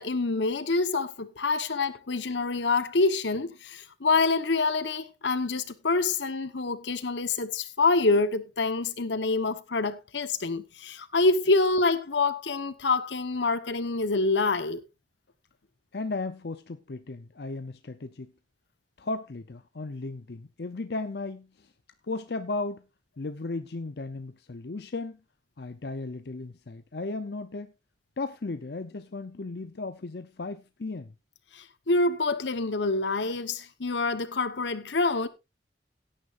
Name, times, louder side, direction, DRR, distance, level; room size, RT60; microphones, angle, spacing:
voice 1, 0.0-14.8 31.5-35.3, left 3 dB, 80° left, 1.1 m, -26 dB
voice 2, 15.9-18.3 19.0-21.7 22.1-22.8 23.2-25.2 25.6-27.7 28.2-31.1, left 3 dB, 60° left, 0.7 m, -35 dB
16.5 x 9.8 x 2.5 m
head